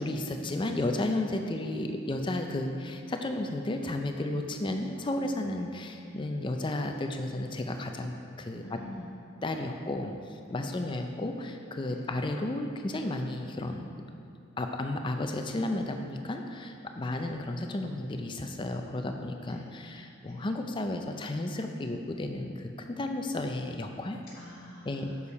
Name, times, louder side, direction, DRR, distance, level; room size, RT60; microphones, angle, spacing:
voice 1, 0.0-8.6 9.4-10.1 10.5-13.9 14.6-24.2 24.9-25.1, left 1 dB, 25° left, 4 dB, 0.4 m, -33 dB
voice 2, 8.6-9.1 10.6-11.0 11.9-12.2 17.0-17.3 19.5-19.6 20.2-20.4 24.3-25.2, left 1 dB, 50° left, -10 dB, 1.3 m, -47 dB
7.0 x 6.7 x 4.1 m, 2.6 s
head